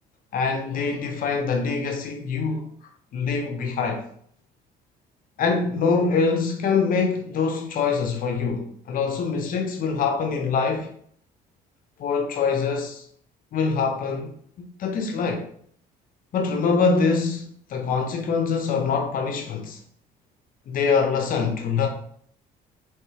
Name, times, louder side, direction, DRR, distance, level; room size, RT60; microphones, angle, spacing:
voice 1, 0.3-2.7 3.1-4.0 5.4-10.9 12.0-13.0 13.5-14.3 14.6-15.4 16.3-19.8 20.7-21.9, left 5 dB, 55° left, 0.6 m, -24 dB
4.5 x 3.0 x 3.2 m
cardioid pair, 110°, 17 cm